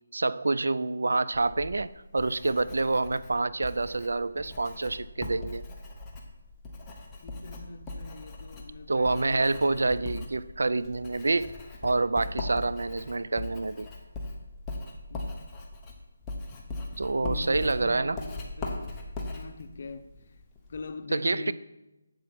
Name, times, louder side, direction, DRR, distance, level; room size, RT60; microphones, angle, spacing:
voice 1, 0.1-5.6 8.9-11.5 11.8-13.9 17.0-18.2 21.1-21.5, right 3 dB, 80° right, 0.4 m, -27 dB
Writing, 1.3-20.9, left 2 dB, 10° left, 1.0 m, -40 dB
voice 2, 7.2-9.9 15.1-15.3 17.2-20.1 20.7-21.5, left 3 dB, 50° left, 0.7 m, -42 dB
7.7 x 7.6 x 4.3 m
figure-of-eight pair, 165°, 0 cm